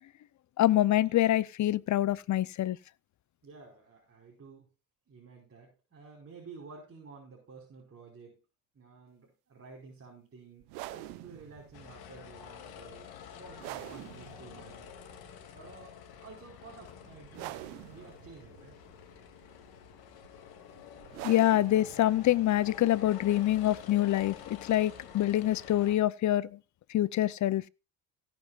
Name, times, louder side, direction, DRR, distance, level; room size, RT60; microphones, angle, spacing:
voice 1, 0.6-2.8 21.2-26.6 26.9-27.6, left 13 dB, 45° left, 0.7 m, -26 dB
voice 2, 3.4-4.7 5.1-8.4 8.7-14.9 15.5-18.8, right 4 dB, 35° right, 5.4 m, -52 dB
sound 1, 10.6-25.9, right 17 dB, 75° right, 1.1 m, -48 dB
sound 2, 11.7-26.0, left 9 dB, 60° left, 2.8 m, -49 dB
17.5 x 9.4 x 2.5 m
hypercardioid pair, 70°, 41 cm